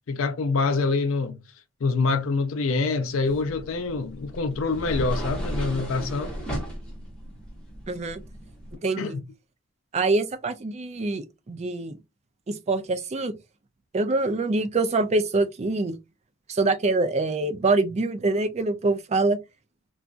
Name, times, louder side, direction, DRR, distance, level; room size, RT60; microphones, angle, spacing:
voice 1, 0.1-1.4 1.8-6.3 9.0-9.2, left 4 dB, 60° left, 0.4 m, -25 dB
sound 1, 3.2-8.7, equal, 5° left, 1.0 m, -35 dB
voice 2, 7.9-8.2 8.8-9.2 9.9-12.0 12.5-13.3 13.9-16.0 16.5-19.4, right 3 dB, 30° right, 0.4 m, -25 dB
3.9 x 2.3 x 2.4 m
head